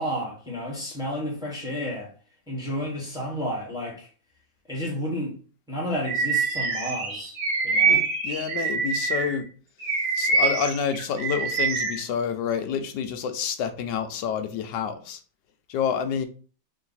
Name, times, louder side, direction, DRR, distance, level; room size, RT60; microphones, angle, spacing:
voice 1, 0.0-2.1 2.5-4.1 4.7-5.3 5.7-7.3 7.6-8.1, equal, ahead, 1.1 m, -31 dB
Bird vocalization bird call bird song, 6.1-9.4 9.8-12.0, right 4 dB, 65° right, 1.5 m, -25 dB
voice 2, 7.8-9.5 10.1-15.2 15.7-16.3, left 7 dB, 75° left, 1.2 m, -28 dB
3.7 x 2.6 x 4.1 m
omnidirectional pair, 2.1 m